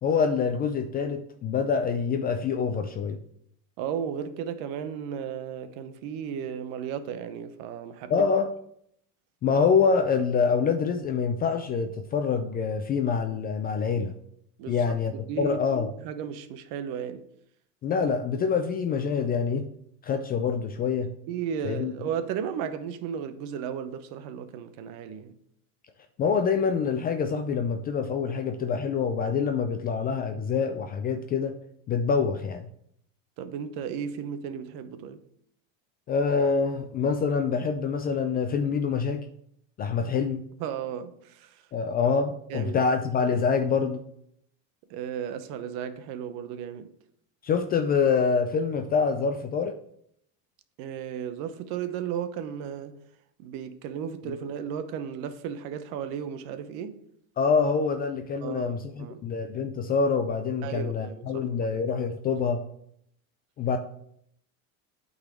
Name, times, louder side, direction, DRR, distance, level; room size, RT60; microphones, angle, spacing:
voice 1, 0.0-3.2 8.1-8.5 9.4-14.1 14.7-15.9 17.8-19.7 20.0-21.1 21.6-21.9 26.2-31.5 31.9-32.7 36.1-39.3 39.8-40.5 41.7-44.0 47.4-49.8 54.2-54.3 57.4-62.6 63.6-63.8, left 5 dB, 25° left, 0.3 m, -26 dB
voice 2, 3.8-8.3 14.6-15.6 16.0-17.3 21.3-25.4 33.4-35.2 40.6-41.6 42.5-42.7 44.9-46.9 50.8-52.9 53.4-57.0 58.4-59.2 60.6-61.4, right 8 dB, 55° right, 0.9 m, -34 dB
8.7 x 4.1 x 5.0 m
supercardioid pair, 120°, 43 cm